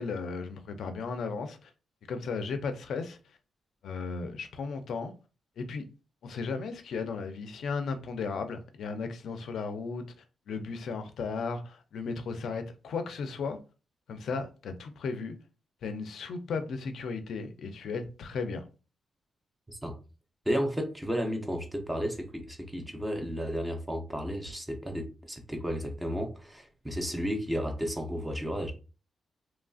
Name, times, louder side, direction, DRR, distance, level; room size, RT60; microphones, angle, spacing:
voice 1, 0.0-1.7 2.1-3.2 3.8-5.1 5.6-5.9 6.2-10.0 10.5-13.6 14.1-15.4 15.8-18.6, left 4 dB, 65° left, 0.4 m, -35 dB
voice 2, 20.5-28.7, equal, 10° right, 0.5 m, -33 dB
3.0 x 2.4 x 2.3 m
wide cardioid pair, 170°, 0 cm